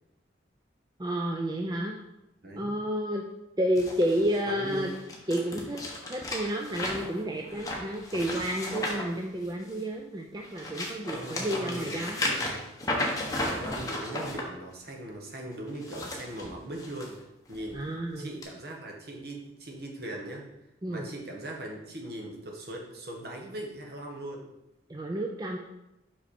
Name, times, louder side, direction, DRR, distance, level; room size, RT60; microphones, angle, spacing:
voice 1, 1.0-1.9 2.6-3.2 3.6-4.9 5.3-5.8 6.1-12.3 17.7-18.3 20.8-21.1 24.9-25.6, right 1 dB, 20° right, 1 dB, 0.4 m, -30 dB
voice 2, 2.4-2.8 4.5-5.0 11.1-12.6 13.4-17.2 17.5-17.8 18.1-20.5 20.9-24.5, right 1 dB, 55° right, 0 dB, 1.3 m, -40 dB
sound 1, 3.8-9.9 10.4-14.4 15.7-17.1 17.5-17.8 18.4-18.5, left 1 dB, 20° left, 1.0 m, -34 dB
5.6 x 5.5 x 4.2 m, 0.92 s
head